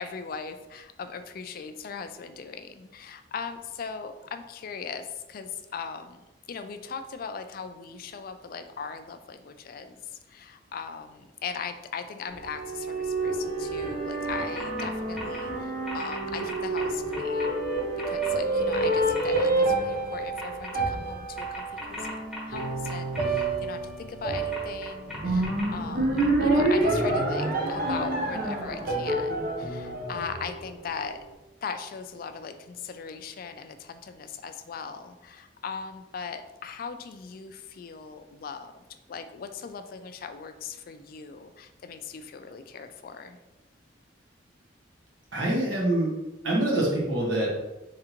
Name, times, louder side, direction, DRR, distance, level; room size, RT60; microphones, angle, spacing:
voice 1, 0.0-17.7 18.1-22.2 22.5-31.2 31.6-38.7 39.1-43.4, left 6 dB, 50° left, 8 dB, 0.3 m, -39 dB
sound 1, 12.3-30.9, right 2 dB, 50° right, 0.7 m, -28 dB
sound 2, 14.6-14.9 15.1-15.4 15.9-17.5 18.0-18.3 18.7-19.4 20.4-20.7 21.4-23.4 24.3-25.7 26.2-26.3, left 2 dB, ahead, 1.0 m, -38 dB
voice 2, 45.3-46.2 46.4-47.7, right 1 dB, 75° right, -4 dB, 1.4 m, -25 dB
3.7 x 3.3 x 2.9 m, 1.0 s
head